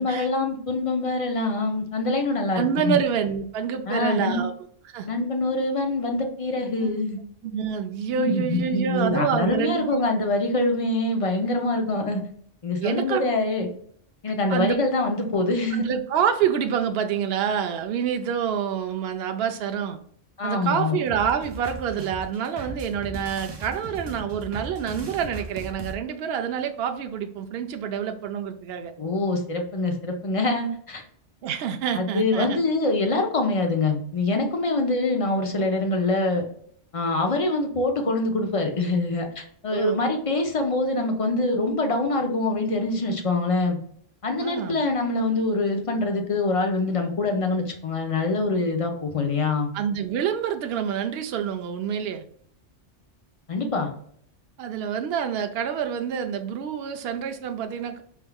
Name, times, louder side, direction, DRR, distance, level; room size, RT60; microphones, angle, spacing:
voice 1, 0.0-3.0 3.9-4.4 5.1-7.2 8.1-12.2 12.6-13.7 14.2-15.8 20.4-21.0 29.0-31.0 31.9-36.4 36.9-43.8 44.2-49.7 53.5-53.9, left 2 dB, 35° left, 3 dB, 0.6 m, -24 dB
voice 2, 2.5-4.5 4.9-5.1 6.8-6.9 7.4-10.0 12.8-13.3 14.5-14.8 15.8-20.0 20.4-28.9 31.4-32.6 39.7-40.0 44.4-44.8 49.7-52.2 54.6-58.0, right 8 dB, 65° right, 6 dB, 0.7 m, -27 dB
sound 1, 21.1-25.9, right 2 dB, 35° right, 0.4 m, -37 dB
4.5 x 3.5 x 2.3 m, 0.63 s
omnidirectional pair, 1.3 m